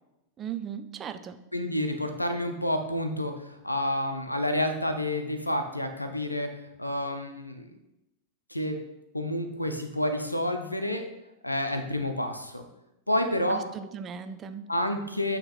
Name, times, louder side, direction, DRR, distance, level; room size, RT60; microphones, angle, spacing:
voice 1, 0.4-1.4 13.5-14.7, right 8 dB, 25° right, 9 dB, 0.4 m, -37 dB
voice 2, 1.5-6.5 6.8-7.7 8.5-8.8 9.1-11.0 11.4-12.6 13.1-13.7 14.7-15.4, left 1 dB, 85° left, 7 dB, 0.6 m, -29 dB
8.7 x 3.0 x 4.2 m, 0.90 s
figure-of-eight pair, 90°, 0 cm